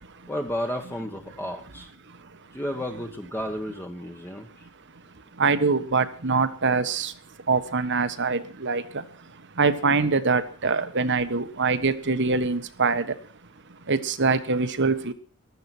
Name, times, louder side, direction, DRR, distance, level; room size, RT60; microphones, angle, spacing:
voice 1, 0.3-1.9 2.5-4.7, equal, 10° left, 1.4 m, -32 dB
voice 2, 2.0-2.5 4.6-13.3 13.6-15.1, right 4 dB, 55° right, 1.4 m, -25 dB
15.5 x 13.0 x 6.1 m
head